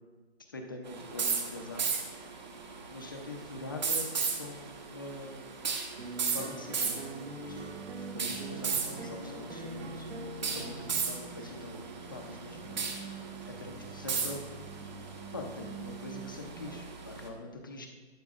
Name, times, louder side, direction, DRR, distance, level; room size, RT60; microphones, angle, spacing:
voice 1, 0.5-2.1 2.9-4.1 4.4-5.4 6.2-7.1 7.4-7.7 8.1-10.1 10.5-12.8 13.4-14.6 15.3-17.9, left 2 dB, 20° left, 2 dB, 0.6 m, -44 dB
sound 1, 0.9-17.3, right 5 dB, 40° right, 1.3 m, -37 dB
sound 2, 6.0-11.0, right 2 dB, 70° right, 1.6 m, -43 dB
sound 3, 7.4-16.9, right 6 dB, 10° right, 1.2 m, -48 dB
14.5 x 11.0 x 2.4 m, 1.4 s
hypercardioid pair, 165°, 35 cm